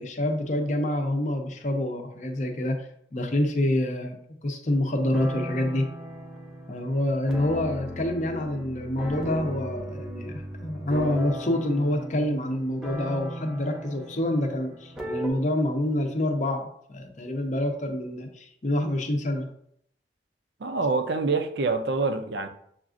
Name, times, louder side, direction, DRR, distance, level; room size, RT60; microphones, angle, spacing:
voice 1, 0.0-4.2 4.4-5.9 6.7-19.5, left 1 dB, 40° left, 0.6 m, -27 dB
sound 1, 4.9-15.3, equal, 5° right, 0.5 m, -37 dB
voice 2, 20.6-22.5, right 3 dB, 65° right, 0.4 m, -26 dB
7.0 x 2.4 x 2.5 m
head